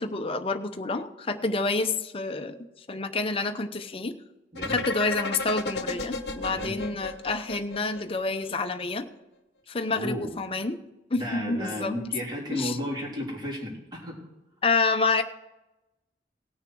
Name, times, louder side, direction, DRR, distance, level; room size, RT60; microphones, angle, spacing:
voice 1, 0.0-2.6 2.9-4.2 4.7-9.1 9.7-10.8 11.1-12.0 12.5-12.8 14.6-15.2, left 3 dB, 30° left, 7 dB, 0.7 m, -28 dB
voice 2, 4.5-4.9 6.5-6.9 9.9-10.3 11.1-14.2, left 1 dB, 25° right, -4 dB, 3.5 m, -33 dB
sound 1, 4.6-8.4, left 3 dB, 65° left, 1.0 m, -33 dB
18.0 x 6.5 x 4.7 m, 0.98 s
head